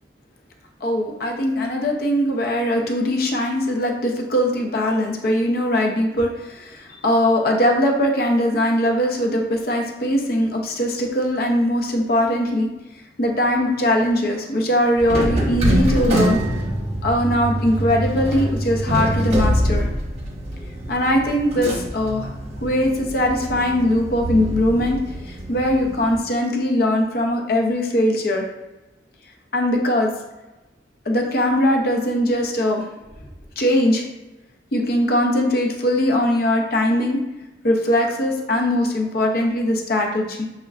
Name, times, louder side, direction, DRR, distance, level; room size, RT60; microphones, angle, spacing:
voice 1, 0.8-12.7 13.2-16.4 17.0-19.9 20.9-22.3 22.6-28.4 29.5-30.1 31.1-32.8 33.6-34.1 34.7-37.2 37.6-40.5, left 1 dB, 55° left, 1 dB, 0.6 m, -20 dB
sound 1, 15.0-26.2, right 1 dB, 35° right, 0.9 m, -24 dB
6.3 x 2.1 x 2.3 m, 1.1 s
head